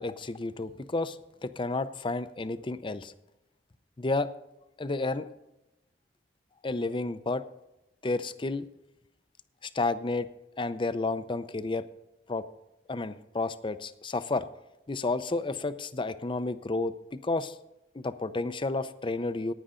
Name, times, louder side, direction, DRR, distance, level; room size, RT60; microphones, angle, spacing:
voice 1, 0.0-3.1 4.0-4.3 4.8-5.3 6.6-7.4 8.0-8.7 9.6-10.3 10.6-11.8 12.3-12.4 12.9-14.5 14.9-17.6 17.9-19.5, left 3 dB, 30° left, 13 dB, 0.5 m, -31 dB
15.5 x 9.9 x 3.8 m, 0.92 s
head